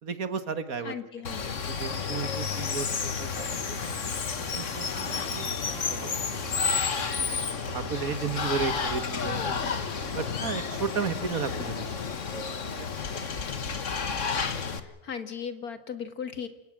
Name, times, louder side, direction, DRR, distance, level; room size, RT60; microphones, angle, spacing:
voice 1, 0.0-0.9 1.3-1.4 1.7-3.9 4.4-7.3 7.7-9.6 10.2-12.0 12.3-13.2 14.2-14.4, right 6 dB, 65° right, 11 dB, 2.0 m, -35 dB
voice 2, 0.8-1.6 14.8-16.5, left 7 dB, 75° left, 10 dB, 2.3 m, -37 dB
Water, 1.2-14.8, left 5 dB, 55° left, 1.8 m, -31 dB
sound 1, 2.3-7.2 8.4-11.3, left 4 dB, 35° left, 1.4 m, -42 dB
Singing / Musical instrument, 5.2-12.7, right 1 dB, 35° right, 5.9 m, -48 dB
28.5 x 17.0 x 7.6 m, 1.0 s
omnidirectional pair, 1.6 m